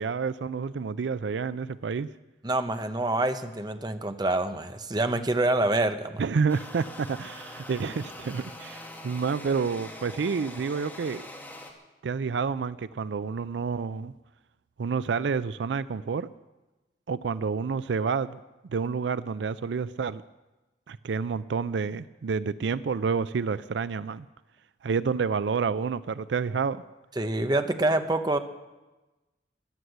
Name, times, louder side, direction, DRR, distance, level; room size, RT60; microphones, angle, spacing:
voice 1, 0.0-2.1 6.2-11.3 12.0-14.1 14.8-16.3 17.1-18.4 18.7-20.2 20.9-24.3 24.8-26.8, right 5 dB, 80° right, 16 dB, 0.4 m, -29 dB
voice 2, 2.4-6.2 27.2-28.4, right 2 dB, 25° right, 8 dB, 0.8 m, -26 dB
sound 1, 6.5-11.7, left 1 dB, 10° left, 1.8 m, -43 dB
14.0 x 11.5 x 8.0 m, 1.1 s
head